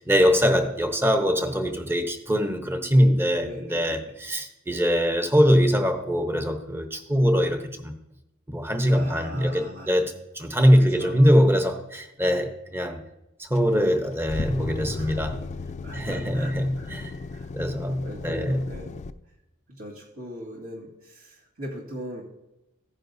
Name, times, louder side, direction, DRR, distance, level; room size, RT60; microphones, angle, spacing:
voice 1, 0.0-7.9 8.5-13.0 13.4-15.4 15.9-17.1 17.5-18.6, equal, 10° right, 0.8 m, -22 dB
voice 2, 3.4-4.0 8.9-9.9 10.8-11.3 14.9-15.4 15.8-17.5 18.0-19.0 19.7-22.2, equal, 75° right, 2.2 m, -40 dB
sound 1, 13.6-19.1, left 3 dB, 35° left, 0.3 m, -36 dB
14.5 x 9.9 x 2.7 m
head